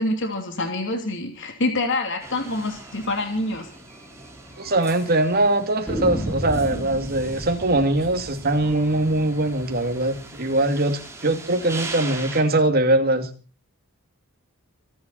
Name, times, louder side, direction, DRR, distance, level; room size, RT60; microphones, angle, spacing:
voice 1, 0.0-3.7, left 2 dB, 60° left, 4 dB, 3.0 m, -26 dB
sound 1, 2.2-12.4, right 3 dB, 15° right, 4.3 m, -40 dB
sound 2, 3.1-3.2 3.5-3.6 3.9-4.0 4.6-5.2 5.9-10.7, equal, 5° left, 4.2 m, -33 dB
voice 2, 4.6-13.3, right 2 dB, 45° right, 6 dB, 2.6 m, -22 dB
25.5 x 11.0 x 4.2 m, 0.36 s
head